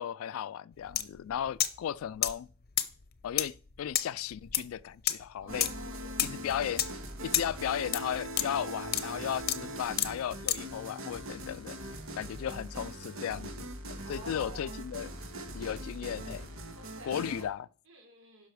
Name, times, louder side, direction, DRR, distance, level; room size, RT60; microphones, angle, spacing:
voice 1, 0.0-2.5 3.2-5.7 6.0-6.8 7.2-11.8 12.2-15.1 15.5-16.5 17.0-17.7, left 9 dB, 90° left, 0.3 m, -36 dB
sound 1, 0.9-1.0 1.3-1.8 2.2-10.7, left 12 dB, 50° left, 0.7 m, -30 dB
voice 2, 5.4-6.4 12.1-12.4 14.0-14.8 16.8-17.5 17.9-18.5, right 1 dB, 70° right, 3.5 m, -50 dB
sound 2, 5.5-17.4, right 1 dB, 90° right, 1.6 m, -41 dB
11.5 x 5.6 x 4.7 m
head